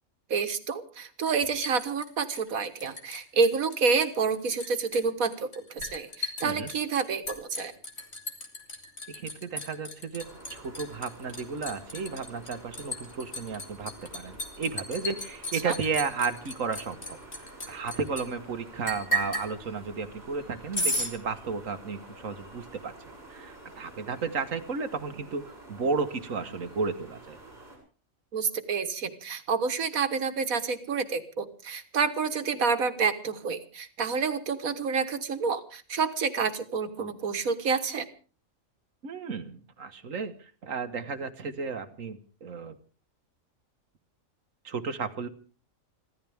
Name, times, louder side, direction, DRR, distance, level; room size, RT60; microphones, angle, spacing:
voice 1, 0.3-7.7 15.5-15.7 28.3-38.1, right 5 dB, 90° right, 10 dB, 1.9 m, -28 dB
Liquid, 1.3-3.2 3.4-4.1 4.3-18.2 18.9-19.5 20.7-21.1, equal, 50° left, 3.1 m, -34 dB
voice 2, 9.1-22.9 23.3-27.4 39.0-42.7 44.6-45.3, right 5 dB, 70° right, 9 dB, 1.7 m, -33 dB
sound 1, 10.2-27.8, right 2 dB, 30° right, 7.4 m, -49 dB
26.0 x 15.5 x 3.5 m, 0.38 s
omnidirectional pair, 1.4 m